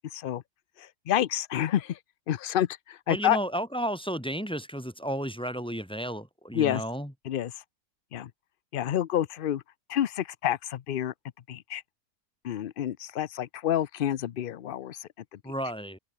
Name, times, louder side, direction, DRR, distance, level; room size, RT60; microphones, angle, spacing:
voice 1, 0.1-0.4 0.8-2.0 2.3-3.4 6.5-6.8 7.2-7.6 8.1-8.3 8.7-9.6 9.9-11.1 11.5-11.8 12.4-15.5, left 11 dB, 60° left, 0.5 m, -29 dB
voice 2, 3.1-7.1 15.4-16.0, equal, 5° left, 4.3 m, -32 dB
omnidirectional pair, 1.6 m